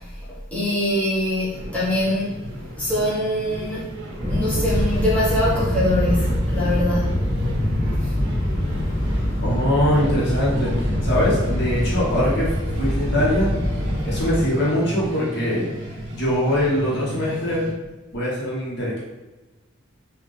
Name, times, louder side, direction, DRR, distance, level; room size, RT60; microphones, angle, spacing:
voice 1, 0.5-2.4 2.8-3.9 4.3-7.3 8.0-8.1, left 1 dB, 5° left, -9 dB, 1.1 m, -23 dB
sound 1, 1.5-17.7, equal, 60° right, 0.6 m, -34 dB
Fixed-wing aircraft airplane, 4.2-14.5, left 1 dB, 25° right, 1.5 m, -24 dB
voice 2, 9.4-10.7 11.0-12.5 12.8-13.5 14.0-15.7 16.2-17.7 18.1-19.0, equal, 55° left, -6 dB, 1.3 m, -22 dB
3.9 x 2.7 x 3.3 m, 1.1 s
head